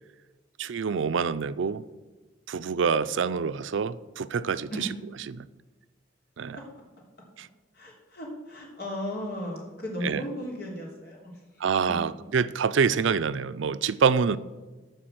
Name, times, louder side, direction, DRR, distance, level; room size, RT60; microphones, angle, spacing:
voice 1, 0.6-1.8 2.5-4.9 5.3-5.5 6.4-6.6 7.4-7.5 10.0-10.2 11.6-14.4, right 6 dB, 80° right, 15 dB, 0.4 m, -26 dB
voice 2, 7.7-11.4 11.9-12.0, equal, 55° left, -2 dB, 3.1 m, -35 dB
13.0 x 4.7 x 7.8 m, 1.3 s
head